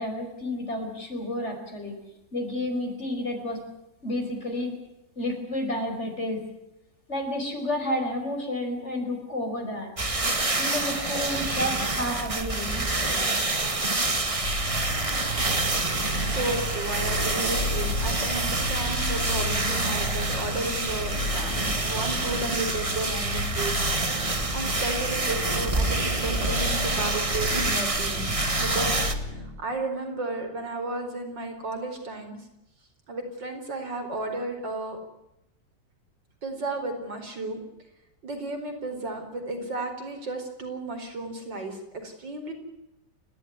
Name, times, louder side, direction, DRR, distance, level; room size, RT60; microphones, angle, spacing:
voice 1, 0.0-2.0 2.3-3.6 4.0-4.8 5.2-6.4 7.1-9.9 10.6-12.9, left 1 dB, 35° left, 3 dB, 5.5 m, -30 dB
sound 1, 10.0-29.1, right 2 dB, 20° right, 1.6 m, -27 dB
sound 2, 14.2-20.6, right 3 dB, 55° right, 3.6 m, -47 dB
sound 3, 14.4-29.4, left 1 dB, 75° left, 6.9 m, -33 dB
voice 2, 16.2-23.8 24.5-32.4 33.1-35.0 36.4-37.6 38.2-42.5, right 2 dB, 80° right, 4 dB, 5.3 m, -33 dB
30.0 x 13.5 x 9.7 m, 0.88 s
omnidirectional pair, 2.0 m